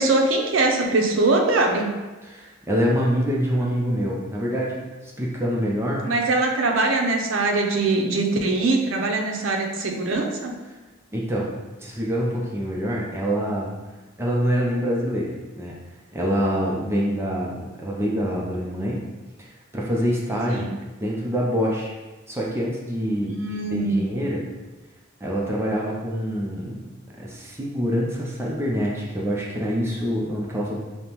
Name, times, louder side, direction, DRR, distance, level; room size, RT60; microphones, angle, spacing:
voice 1, 0.0-2.0 6.0-10.5 20.5-20.7 23.2-24.0, right 2 dB, 80° right, 2 dB, 0.5 m, -22 dB
voice 2, 2.2-6.1 11.1-11.5 11.8-13.7 14.2-15.7 16.1-19.1 19.7-20.7 21.0-21.9 22.3-24.4 25.2-30.8, equal, 15° right, -4 dB, 0.4 m, -25 dB
5.1 x 2.0 x 2.9 m, 1.2 s
head